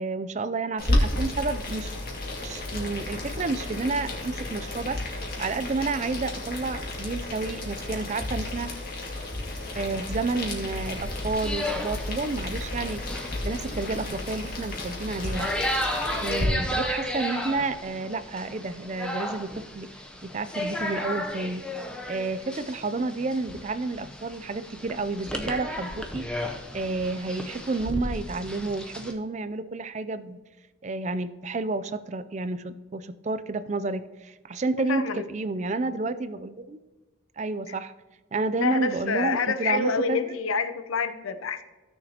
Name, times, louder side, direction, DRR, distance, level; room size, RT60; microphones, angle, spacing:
voice 1, 0.0-1.9 2.4-5.0 5.4-8.7 9.8-13.0 13.4-15.5 16.2-19.9 20.2-21.6 22.0-30.4 30.8-36.8 37.4-37.9 38.3-40.2, right 3 dB, 35° right, 13 dB, 0.4 m, -30 dB
Boiling, 0.8-16.4, left 1 dB, 45° left, 1.8 m, -32 dB
sound 1, 10.8-29.1, left 1 dB, 5° left, 0.7 m, -34 dB
voice 2, 34.7-35.3 37.7-37.8 38.6-41.6, left 4 dB, 90° left, 10 dB, 0.7 m, -27 dB
15.5 x 6.6 x 2.9 m, 1.2 s
head